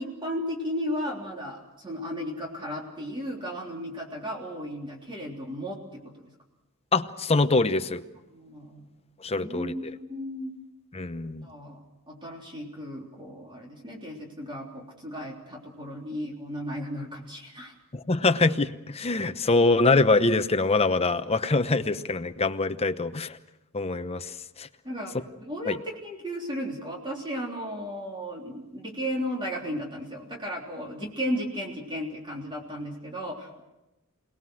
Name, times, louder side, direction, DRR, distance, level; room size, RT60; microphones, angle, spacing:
voice 1, 0.0-6.3 8.3-8.9 9.4-10.5 11.4-11.8 12.1-17.7 24.8-33.6, equal, 20° right, -1 dB, 3.4 m, -35 dB
voice 2, 6.9-8.0 9.2-9.9 10.9-11.5 17.9-23.4 23.7-24.7 25.7-25.8, left 3 dB, 30° left, 10 dB, 0.9 m, -24 dB
28.5 x 19.0 x 6.4 m, 0.98 s
head